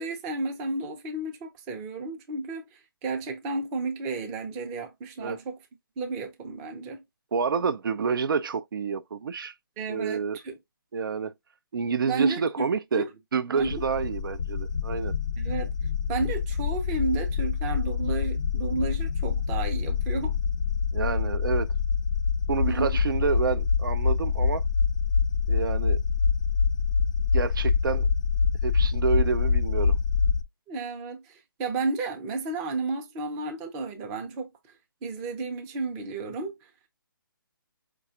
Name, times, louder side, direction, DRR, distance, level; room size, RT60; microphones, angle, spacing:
voice 1, 0.0-5.6 6.0-7.0 9.8-10.5 12.1-13.1 13.6-13.7 15.4-15.7 16.1-20.4 22.7-22.9 30.7-34.5 35.0-36.7, right 3 dB, 15° right, 0.5 m, -32 dB
voice 2, 7.3-9.5 9.9-10.4 10.9-11.3 11.7-13.1 13.3-15.1 20.9-21.7 22.5-24.6 25.5-26.0 27.3-28.1 28.6-30.0, right 5 dB, 70° right, 0.4 m, -28 dB
sound 1, 13.6-30.4, left 5 dB, 55° left, 0.5 m, -26 dB
4.9 x 2.3 x 2.7 m
hypercardioid pair, 160°, 12 cm